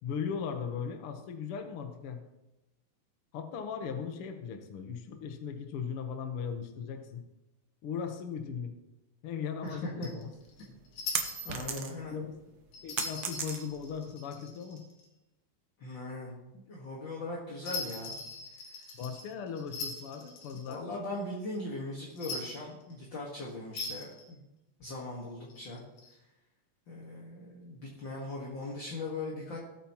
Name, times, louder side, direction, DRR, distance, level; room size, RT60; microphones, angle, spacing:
voice 1, 0.0-2.2 3.3-7.2 7.8-8.7 9.2-10.3 12.1-12.4 12.8-14.8 18.9-20.8, left 6 dB, 65° left, 5 dB, 1.4 m, -38 dB
voice 2, 9.6-10.1 10.6-10.7 11.4-12.2 15.8-16.4 16.7-18.2 20.7-24.4 24.8-25.8 26.9-29.6, left 2 dB, 40° left, -3 dB, 1.9 m, -39 dB
sound 1, 9.7-11.7 12.7-15.1 17.6-20.8 22.1-22.9 23.7-24.3 25.5-26.1, left 4 dB, 85° left, 3.7 m, -41 dB
sound 2, 10.3-12.2 12.5-14.0, right 7 dB, 75° right, 1.3 m, -35 dB
17.5 x 8.7 x 3.1 m, 0.95 s
omnidirectional pair, 4.1 m